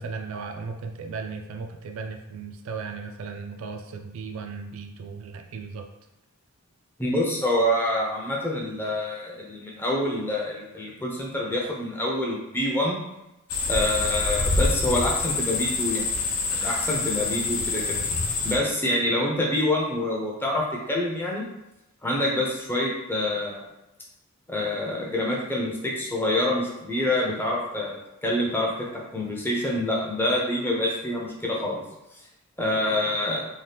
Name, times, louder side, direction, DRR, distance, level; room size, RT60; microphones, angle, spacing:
voice 1, 0.0-5.8, right 4 dB, 65° right, 5 dB, 0.3 m, -36 dB
voice 2, 7.0-13.0 13.7-16.1 16.5-18.0 18.4-21.4 22.0-23.6 24.5-28.9 29.1-31.8 32.6-33.5, left 1 dB, 10° left, -3 dB, 0.4 m, -26 dB
sound 1, 13.5-18.6, left 3 dB, 80° left, 0.5 m, -26 dB
2.8 x 2.1 x 3.3 m, 0.92 s
head